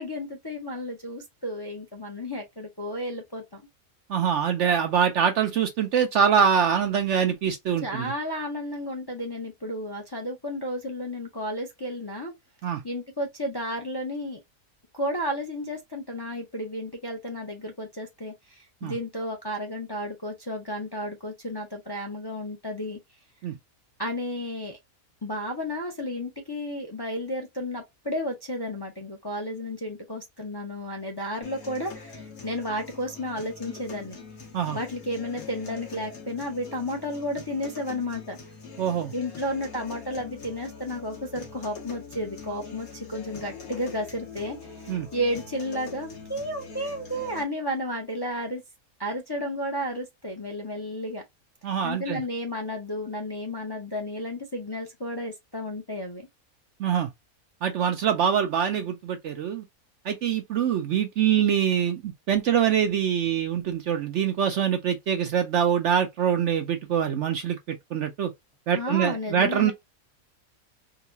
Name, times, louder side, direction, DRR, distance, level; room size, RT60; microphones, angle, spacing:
voice 1, 0.0-3.6 7.8-12.3 12.8-14.4 14.9-23.0 24.0-24.8 25.2-34.2 34.7-38.4 39.1-44.7 45.1-48.6 49.0-51.2 51.8-56.3 68.7-69.7, equal, 25° left, 0.6 m, -32 dB
voice 2, 4.1-8.1 12.6-12.8 18.8-19.0 23.4-23.6 34.5-34.8 38.8-39.1 44.9-45.1 51.6-52.2 56.8-57.1 57.6-59.6 60.0-68.3 68.7-69.7, right 8 dB, 65° right, 0.8 m, -24 dB
sound 1, 31.4-47.4, left 5 dB, 80° left, 1.7 m, -43 dB
3.8 x 2.2 x 2.6 m
omnidirectional pair, 1.5 m